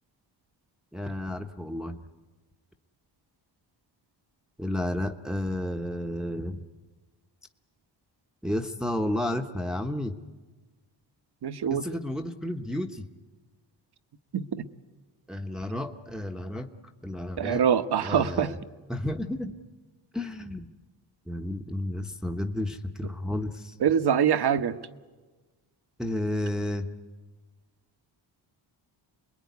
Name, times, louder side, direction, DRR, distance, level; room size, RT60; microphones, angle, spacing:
voice 1, 0.9-2.0 4.6-6.6 8.4-10.2 11.7-13.1 15.3-16.7 17.0-17.6 18.0-18.6 18.9-19.6 20.1-20.7 21.3-23.8 26.0-26.9, left 1 dB, ahead, 4 dB, 1.1 m, -32 dB
voice 2, 11.4-11.9 14.3-14.7 17.4-18.5 23.8-24.8, right 8 dB, 55° right, 9 dB, 1.2 m, -24 dB
28.0 x 20.5 x 9.5 m, 1.3 s
cardioid pair, 80°, 47 cm